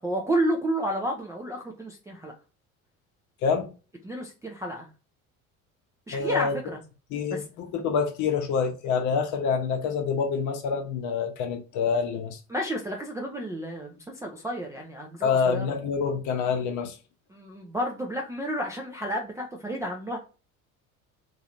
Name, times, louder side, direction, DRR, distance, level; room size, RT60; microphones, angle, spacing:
voice 1, 0.0-2.3 4.0-4.9 6.1-6.8 7.3-7.4 12.5-15.7 17.3-20.2, right 1 dB, 10° right, 0.4 m, -31 dB
voice 2, 6.1-6.6 7.1-12.4 15.2-17.0, left 6 dB, 45° left, 0.8 m, -26 dB
3.1 x 2.8 x 2.5 m
figure-of-eight pair, 65°, 43 cm